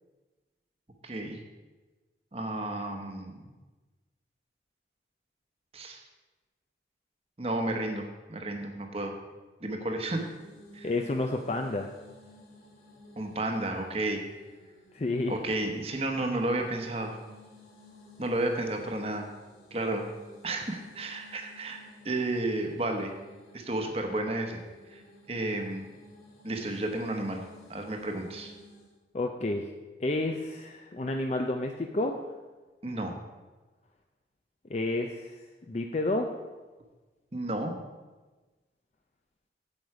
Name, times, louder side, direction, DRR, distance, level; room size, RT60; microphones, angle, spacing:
voice 1, 1.0-1.4 2.3-3.5 5.7-6.0 7.4-9.1 9.6-10.3 10.7-10.9 13.2-14.2 15.3-17.2 18.2-19.3 19.7-20.1 20.4-23.2 23.5-24.6 24.9-25.0 25.3-25.9 26.4-27.4 27.7-28.5 32.8-33.2 37.3-37.7, right 2 dB, 35° right, 4 dB, 1.1 m, -32 dB
sound 1, 10.1-29.0, left 1 dB, 65° left, 3.4 m, -54 dB
voice 2, 10.8-11.9 14.9-15.4 29.1-29.7 30.0-32.2 34.7-36.3, left 2 dB, 35° left, 4 dB, 0.5 m, -30 dB
8.9 x 8.0 x 4.8 m, 1.2 s
head